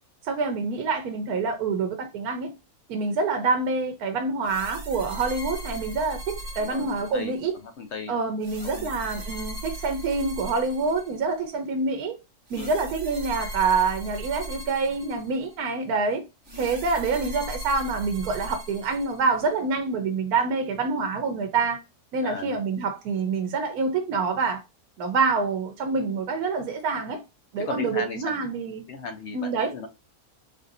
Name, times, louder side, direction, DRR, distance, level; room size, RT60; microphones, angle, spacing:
voice 1, 0.2-2.5 2.9-7.5 8.1-12.2 12.5-16.2 16.6-21.8 22.1-24.6 25.0-27.2 27.5-28.8 29.3-29.7, right 4 dB, 80° right, 1.2 m, -26 dB
sound 1, 4.4-7.6 8.4-11.5 12.5-15.6 16.5-19.6, right 1 dB, 35° right, 1.5 m, -38 dB
voice 2, 6.6-7.4 7.6-8.2 8.6-9.0 12.5-12.7 16.5-16.7 22.2-22.6 27.6-28.3 28.9-29.9, left 4 dB, 60° left, 0.8 m, -36 dB
4.3 x 2.6 x 2.5 m
omnidirectional pair, 1.6 m